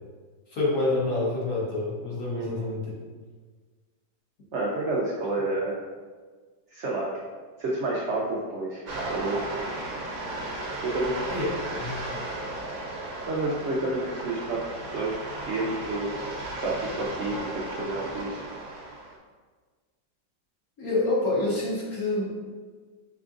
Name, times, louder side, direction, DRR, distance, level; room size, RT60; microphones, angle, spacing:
voice 1, 0.5-2.9 11.3-11.5 11.8-12.0 20.8-22.4, left 2 dB, 55° left, -6 dB, 1.5 m, -27 dB
voice 2, 2.3-2.7 4.5-5.8 6.7-7.1 7.6-8.8 9.1-9.4 10.8-11.2 13.3-14.6 14.9-15.2 15.5-16.1 16.6-18.4, right 2 dB, 85° right, -4 dB, 0.6 m, -29 dB
sound 1, 8.9-19.2, right 2 dB, 65° right, 1.1 m, -35 dB
5.3 x 3.6 x 2.5 m, 1.5 s
omnidirectional pair, 2.0 m